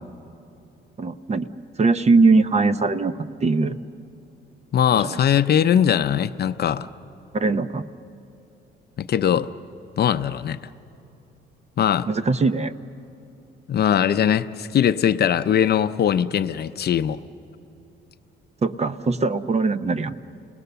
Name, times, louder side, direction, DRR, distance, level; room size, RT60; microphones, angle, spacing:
voice 1, 1.0-1.5 1.8-3.1 3.4-3.8 4.9-5.2 7.3-7.8 12.1-12.7 18.6-20.1, right 3 dB, 35° right, 12 dB, 0.8 m, -21 dB
voice 2, 4.7-6.9 9.0-9.5 10.0-10.6 11.8-12.1 13.7-17.2, left 9 dB, 55° left, 12 dB, 0.6 m, -20 dB
30.0 x 19.5 x 6.9 m, 2.8 s
cardioid pair, 90°, 20 cm